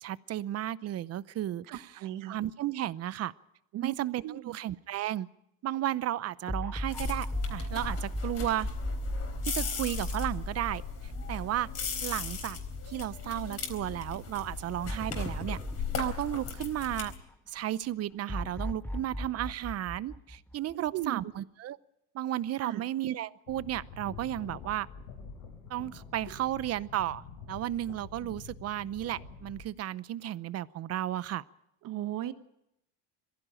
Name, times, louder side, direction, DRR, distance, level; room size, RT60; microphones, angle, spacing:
voice 1, 0.0-1.9 2.3-3.3 3.8-5.3 5.6-8.7 9.4-10.8 11.3-11.7 12.0-12.6 12.9-15.6 16.0-17.1 17.5-21.8 22.1-24.9 25.7-31.4, right 13 dB, 40° right, 19 dB, 0.7 m, -33 dB
voice 2, 1.7-2.4 3.7-3.9 4.2-4.6 20.7-21.2 22.6-22.8 31.8-32.3, right 12 dB, 60° right, 12 dB, 1.4 m, -36 dB
sound 1, 6.5-12.8 13.2-13.3 14.9-17.3 18.3-21.0, equal, 5° left, 2.0 m, -37 dB
sound 2, 6.9-17.2, left 6 dB, 40° left, 4.2 m, -38 dB
sound 3, 23.5-29.7, left 5 dB, 90° left, 7.9 m, -47 dB
22.0 x 15.5 x 9.0 m, 0.82 s
cardioid pair, 120°, 37 cm